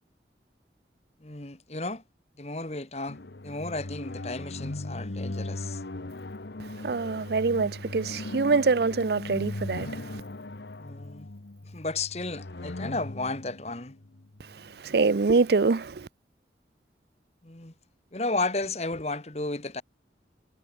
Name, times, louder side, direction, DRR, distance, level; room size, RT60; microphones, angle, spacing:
voice 1, 1.2-2.0 2.4-5.8 10.8-11.3 11.6-14.0 17.4-17.7 18.1-19.8, left 3 dB, 35° left, 1.6 m, -33 dB
sound 1, 3.1-14.7, left 2 dB, 75° left, 1.1 m, -38 dB
voice 2, 6.6-10.2 14.4-16.1, right 4 dB, 65° right, 0.5 m, -25 dB
head